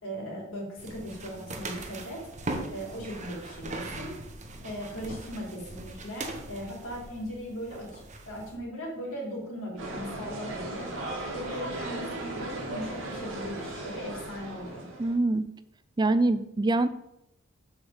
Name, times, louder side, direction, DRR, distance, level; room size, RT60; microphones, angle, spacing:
voice 1, 0.0-2.2 2.7-4.1 4.6-8.0 8.3-10.9 11.3-14.8, equal, 80° left, -2 dB, 3.6 m, -38 dB
sound 1, 0.8-8.6, right 2 dB, 35° right, 1.1 m, -40 dB
sound 2, 9.8-15.2, right 2 dB, 85° right, 2.6 m, -37 dB
voice 2, 15.0-15.5 16.0-16.9, right 2 dB, 20° right, 13 dB, 0.4 m, -24 dB
7.3 x 5.3 x 7.0 m, 0.84 s
head